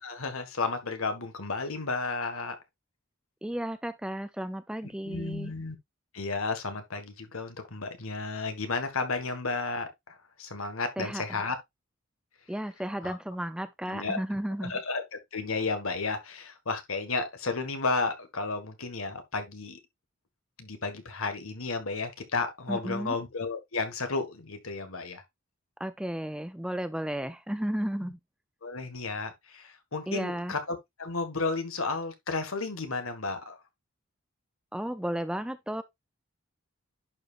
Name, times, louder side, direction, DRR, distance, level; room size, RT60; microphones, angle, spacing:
voice 1, 0.0-2.5 5.0-5.8 6.1-9.9 10.4-11.5 13.0-13.1 13.9-14.2 14.6-15.0 15.3-19.8 20.6-25.2 28.6-33.6, left 3 dB, 80° left, 1.6 m, -32 dB
voice 2, 3.4-5.5 11.0-11.4 12.5-14.8 22.7-23.2 25.8-28.2 30.1-30.5 34.7-35.8, right 1 dB, 5° right, 0.4 m, -33 dB
10.5 x 5.0 x 2.5 m
head